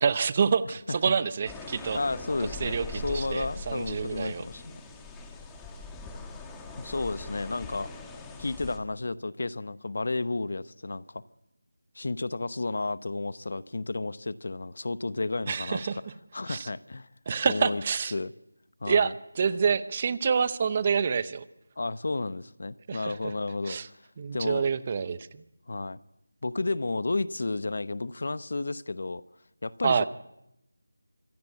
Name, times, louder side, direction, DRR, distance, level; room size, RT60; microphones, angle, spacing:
voice 1, 0.0-2.0 2.6-4.4 15.5-16.0 16.5-16.7 17.3-18.1 18.9-21.4 22.9-23.1 23.7-23.9 24.2-25.4 29.8-30.1, right 6 dB, 25° right, 16 dB, 0.8 m, -27 dB
sound 1, 1.5-8.8, left 3 dB, 5° left, 1.4 m, -41 dB
voice 2, 1.9-4.8 6.8-7.9 8.4-11.2 11.9-16.0 16.3-17.1 17.5-17.8 18.1-18.3 18.8-19.1 21.8-24.0 24.3-24.6 25.7-26.0 26.4-29.2 29.6-30.1, left 3 dB, 55° left, 17 dB, 0.8 m, -32 dB
25.0 x 17.0 x 8.5 m, 0.86 s
figure-of-eight pair, 170°, 0 cm